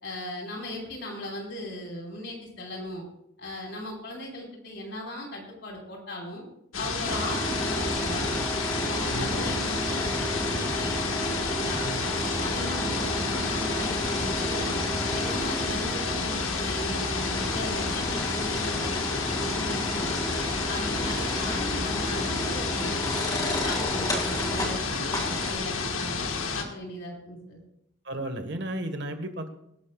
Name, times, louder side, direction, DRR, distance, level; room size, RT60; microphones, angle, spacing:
voice 1, 0.0-3.0 3.4-6.4 6.7-8.4 8.9-11.9 12.4-14.8 15.1-20.2 20.7-23.0 23.3-26.2 26.5-27.6, left 1 dB, 60° left, -1 dB, 4.8 m, -38 dB
sound 1, 6.7-26.6, left 4 dB, 90° left, 1.6 m, -31 dB
sound 2, 7.0-25.5, equal, 15° left, 2.4 m, -31 dB
voice 2, 9.1-9.6 11.8-12.1 12.5-12.7 20.8-20.9 28.0-29.5, right 1 dB, 55° right, 7 dB, 1.5 m, -34 dB
23.5 x 12.0 x 2.4 m, 0.78 s
head